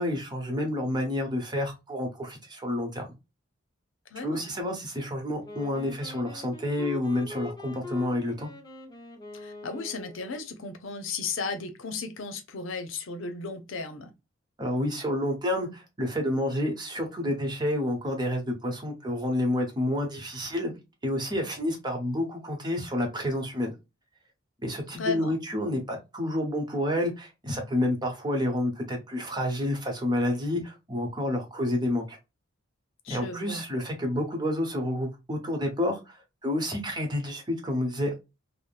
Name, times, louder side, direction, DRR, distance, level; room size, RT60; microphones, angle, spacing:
voice 1, 0.0-3.1 4.2-8.5 14.6-20.8 21.0-23.7 24.6-32.2 33.1-38.2, left 1 dB, 20° right, 0.9 m, -29 dB
voice 2, 4.1-4.5 9.3-14.1 25.0-25.4 33.0-33.6, left 4 dB, 75° left, 0.6 m, -35 dB
Wind instrument woodwind instrument, 5.4-10.4, left 3 dB, 20° left, 0.7 m, -42 dB
3.5 x 2.1 x 2.4 m
head